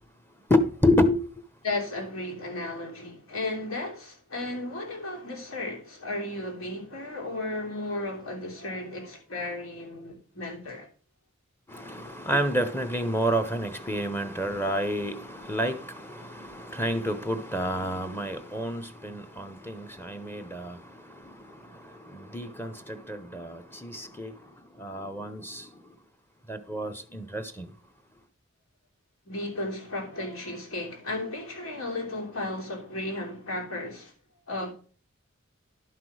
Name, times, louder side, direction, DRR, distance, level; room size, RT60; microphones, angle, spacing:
voice 1, 0.5-1.4 11.7-26.0 26.5-27.7, equal, 10° left, 0.8 m, -29 dB
voice 2, 1.6-10.9 29.2-34.1 34.5-34.7, left 2 dB, 85° left, 3.0 m, -34 dB
11.5 x 5.9 x 4.7 m
head